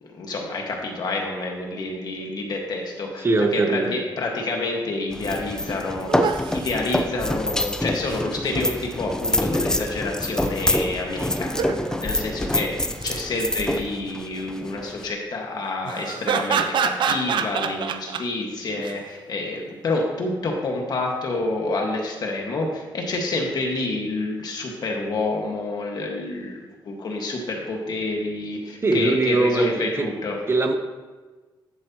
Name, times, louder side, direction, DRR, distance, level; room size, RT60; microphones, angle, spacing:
voice 1, 0.0-30.4, left 2 dB, 50° left, 1 dB, 1.6 m, -28 dB
voice 2, 3.2-4.0 28.8-30.1 30.5-30.7, right 3 dB, 30° right, 6 dB, 0.7 m, -21 dB
sound 1, 5.1-15.1, left 1 dB, 5° left, 0.5 m, -26 dB
sound 2, 5.3-5.4 5.6-5.7 6.1-6.7 7.7-8.2 11.4-12.0 12.8-13.2 15.8-18.2 18.8-19.0, right 6 dB, 65° right, 0.6 m, -26 dB
11.0 x 7.9 x 3.0 m, 1.3 s
cardioid pair, 130°, 9 cm